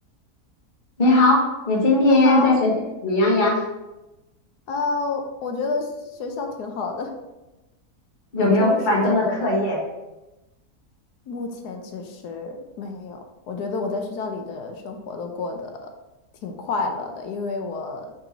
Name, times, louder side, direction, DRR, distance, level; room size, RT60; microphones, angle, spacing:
voice 1, 1.0-2.7 3.0-3.6 8.3-9.8, left 2 dB, 30° left, -3 dB, 1.5 m, -18 dB
voice 2, 2.1-2.5 4.7-7.1 8.4-9.5 11.3-13.2 13.5-15.9 16.4-18.1, left 3 dB, 80° left, 4 dB, 1.4 m, -29 dB
5.6 x 4.2 x 4.0 m, 1.0 s
omnidirectional pair, 1.7 m